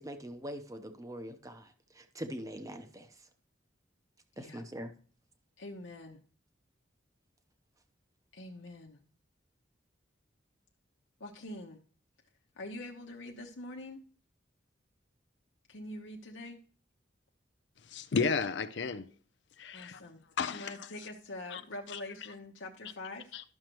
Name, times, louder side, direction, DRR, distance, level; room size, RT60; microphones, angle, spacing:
voice 1, 0.0-3.1 4.4-4.9, equal, 20° right, 0.9 m, -43 dB
voice 2, 5.6-6.2 8.3-9.0 11.2-11.8 12.6-14.1 15.7-16.6 19.7-20.2 20.5-23.4, left 1 dB, 85° left, 1.0 m, -44 dB
voice 3, 17.9-19.1 19.6-20.0 20.4-20.7 21.5-21.6 21.9-22.0 23.3-23.4, left 5 dB, 65° left, 0.5 m, -32 dB
12.0 x 6.5 x 3.1 m
head